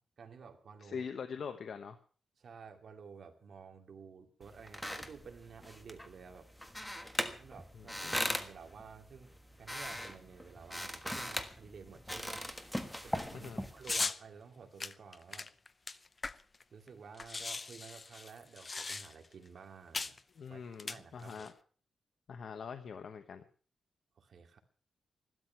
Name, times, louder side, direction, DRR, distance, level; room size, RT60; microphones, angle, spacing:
voice 1, 0.2-1.1 2.4-6.5 7.2-15.5 16.7-20.2 20.5-21.5 24.2-24.6, right 6 dB, 60° right, 5 dB, 2.5 m, -53 dB
voice 2, 0.8-2.0 7.8-8.4 13.3-13.6 20.4-21.5 22.3-23.4, left 6 dB, 65° left, 7 dB, 1.1 m, -43 dB
sound 1, 4.4-14.1, equal, 5° left, 1.5 m, -40 dB
sound 2, 13.8-14.2 14.8-16.6 16.9-17.0 17.2-19.3 19.9-20.2 20.7-21.5, left 3 dB, 30° left, 0.6 m, -38 dB
15.5 x 12.5 x 5.8 m, 0.43 s
wide cardioid pair, 120°, 0 cm